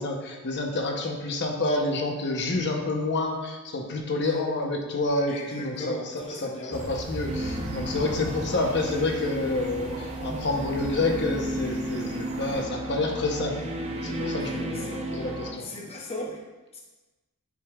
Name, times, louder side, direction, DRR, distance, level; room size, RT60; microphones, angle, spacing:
voice 1, 0.0-13.6 13.9-15.7, left 2 dB, 50° left, 2 dB, 0.9 m, -28 dB
voice 2, 5.3-6.9 14.8-15.0 15.6-16.4 16.7-16.8, equal, 30° left, -1 dB, 0.7 m, -37 dB
sound 1, 6.7-12.6, right 1 dB, 75° right, 1.2 m, -39 dB
sound 2, 7.3-15.5, right 1 dB, 30° right, 0.8 m, -33 dB
9.7 x 5.2 x 2.4 m, 1.2 s
head